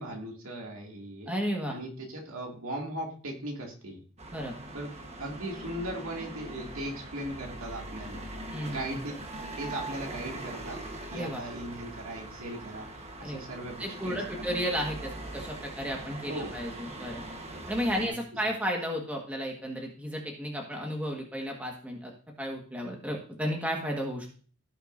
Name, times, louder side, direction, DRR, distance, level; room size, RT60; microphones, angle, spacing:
voice 1, 0.0-1.3 1.7-4.0 4.7-4.9 5.2-8.3 8.7-9.1 9.4-10.8 11.1-14.4 16.3-16.6 18.0-18.2, right 1 dB, 70° right, 1 dB, 2.2 m, -38 dB
voice 2, 1.3-1.8 4.3-4.6 8.5-9.0 11.1-11.4 13.2-13.4 13.8-17.2 17.7-22.1 22.4-24.3, equal, 5° right, 0 dB, 1.5 m, -33 dB
sound 1, 4.2-18.1, right 1 dB, 30° right, 1.2 m, -41 dB
16.0 x 6.5 x 2.6 m, 0.41 s
head